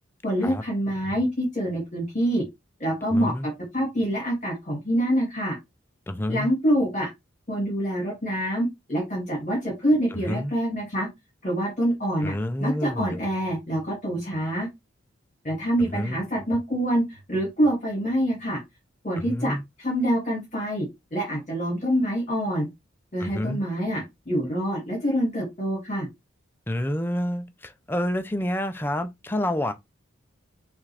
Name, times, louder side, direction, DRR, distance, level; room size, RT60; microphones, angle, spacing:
voice 1, 0.2-2.4 2.8-5.6 6.3-7.1 7.5-11.1 11.4-12.3 12.6-14.7 15.4-18.6 19.0-22.7 23.1-26.1, equal, 35° left, 1.8 m, -26 dB
voice 2, 3.1-3.5 6.1-6.5 10.1-10.5 12.2-13.2 15.8-16.2 19.2-19.6 23.2-23.6 26.7-29.7, left 1 dB, 10° left, 0.4 m, -28 dB
5.9 x 2.4 x 3.3 m
head